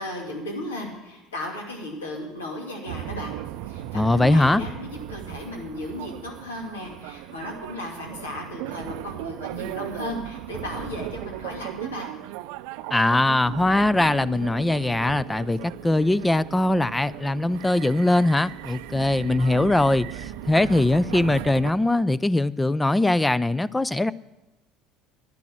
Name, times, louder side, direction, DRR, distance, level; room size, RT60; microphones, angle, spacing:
voice 1, 0.0-3.4 3.7-12.1, left 1 dB, 85° left, 1 dB, 2.4 m, -35 dB
sound 1, 2.9-21.7, right 14 dB, 70° right, 0.5 m, -37 dB
voice 2, 3.9-4.6 12.9-24.1, left 2 dB, 10° left, 19 dB, 0.3 m, -21 dB
11.0 x 10.5 x 6.1 m, 1.0 s
hypercardioid pair, 70°, 0 cm